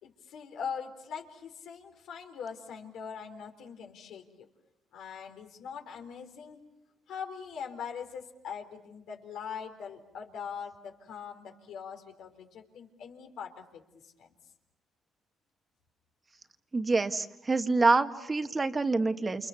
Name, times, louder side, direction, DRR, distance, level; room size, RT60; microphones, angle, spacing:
voice 1, 0.0-4.5 4.9-6.6 7.1-13.8 14.2-14.3, left 6 dB, 80° left, 4 dB, 3.9 m, -42 dB
voice 2, 16.7-19.5, right 3 dB, 25° right, 8 dB, 1.7 m, -26 dB
29.5 x 28.5 x 7.0 m, 0.85 s
cardioid pair, 90°, 0 cm